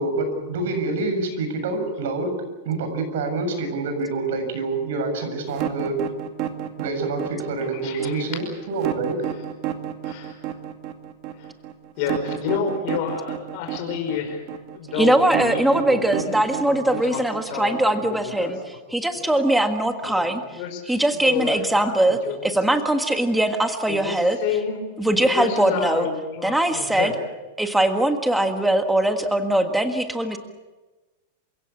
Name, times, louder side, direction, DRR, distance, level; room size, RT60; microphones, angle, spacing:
voice 1, 0.0-2.4 2.6-6.0 6.8-9.2, right 3 dB, 70° right, 6 dB, 7.4 m, -27 dB
sound 1, 5.5-18.4, right 11 dB, 40° right, 2.2 m, -30 dB
voice 2, 7.8-8.2 10.1-10.3 12.0-14.4 14.7-15.5 15.8-16.3 16.9-17.2 17.5-17.8 18.1-18.5 19.2-19.3 20.6-20.8 21.2-21.5 21.8-22.3 23.9-24.1 24.4-24.8 25.4-27.1, left 7 dB, 50° left, 3 dB, 5.4 m, -29 dB
voice 3, 14.9-24.4 25.0-26.1 26.4-27.1 27.6-30.4, right 1 dB, 5° right, 6 dB, 1.6 m, -21 dB
28.5 x 16.5 x 8.6 m, 1.2 s
supercardioid pair, 150°, 0 cm